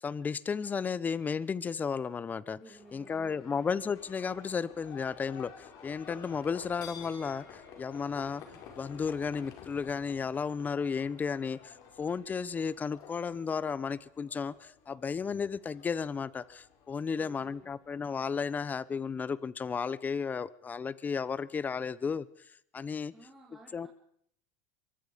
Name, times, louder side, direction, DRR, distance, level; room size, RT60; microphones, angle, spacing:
voice 1, 0.0-2.6 2.9-22.3 22.7-23.1 23.7-23.9, left 6 dB, 20° left, 19 dB, 1.0 m, -34 dB
voice 2, 2.5-3.6 17.1-17.7 23.1-23.9, right 1 dB, ahead, -3 dB, 4.3 m, -55 dB
Livestock farm animals working animals, 2.7-19.2, left 7 dB, 55° left, 5.7 m, -52 dB
24.0 x 23.0 x 5.3 m, 0.69 s
supercardioid pair, 115°, 8 cm